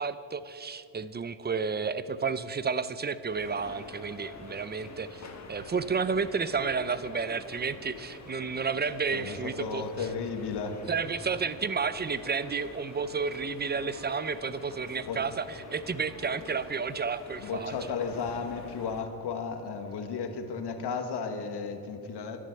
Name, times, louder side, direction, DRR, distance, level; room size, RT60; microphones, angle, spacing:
voice 1, 0.0-9.8 10.9-17.7, right 5 dB, 20° right, 15 dB, 0.6 m, -31 dB
sound 1, 3.3-19.0, left 3 dB, 35° left, 1.9 m, -47 dB
sound 2, 4.0-10.6, left 6 dB, 90° left, 1.8 m, -55 dB
voice 2, 9.1-10.8 15.1-15.2 17.4-22.4, left 5 dB, 60° left, 7 dB, 1.7 m, -34 dB
12.0 x 11.5 x 7.8 m, 2.8 s
cardioid pair, 90°, 45 cm